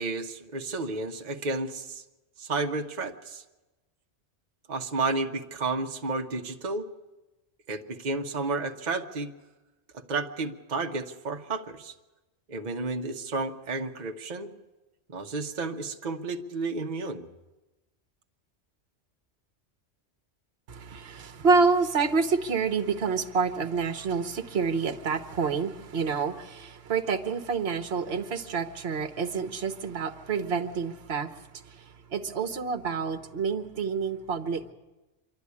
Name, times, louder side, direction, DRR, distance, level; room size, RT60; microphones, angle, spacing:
voice 1, 0.0-2.0 2.4-3.4 4.7-6.9 7.7-9.3 9.9-11.9 12.5-14.5 15.1-17.3, right 3 dB, 40° right, 1.1 m, -32 dB
voice 2, 20.7-31.3 32.1-34.7, right 5 dB, 60° right, 1.3 m, -28 dB
26.5 x 12.0 x 9.7 m
omnidirectional pair, 1.2 m